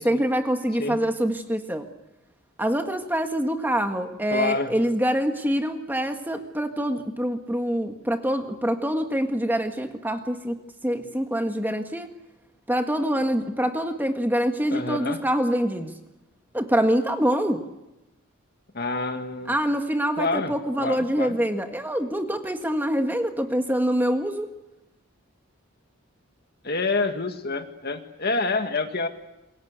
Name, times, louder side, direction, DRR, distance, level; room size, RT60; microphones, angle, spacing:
voice 1, 0.0-1.9 2.6-10.6 10.8-12.1 12.7-15.9 16.5-17.6 19.5-24.5, equal, 10° right, 6 dB, 1.6 m, -25 dB
voice 2, 4.3-4.7 14.7-15.2 18.7-19.6 20.2-21.4 26.6-29.1, left 3 dB, 50° left, 7 dB, 2.1 m, -27 dB
27.5 x 22.5 x 8.1 m, 0.96 s
head